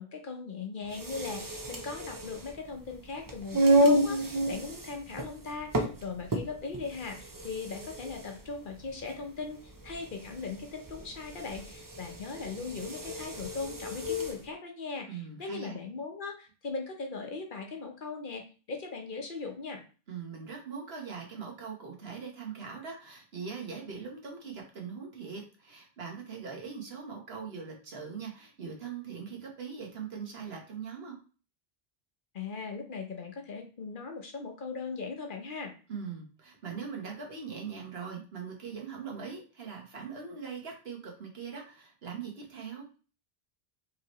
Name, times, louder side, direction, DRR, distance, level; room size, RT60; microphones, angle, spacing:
voice 1, 0.0-19.8 32.3-35.7, left 4 dB, 55° left, 3 dB, 1.0 m, -39 dB
sound 1, 0.8-14.4, right 1 dB, 30° right, 0.3 m, -31 dB
voice 2, 15.1-15.8 20.1-31.1 35.9-42.9, right 6 dB, 75° right, 0 dB, 1.4 m, -41 dB
4.7 x 3.1 x 3.0 m, 0.36 s
omnidirectional pair, 1.1 m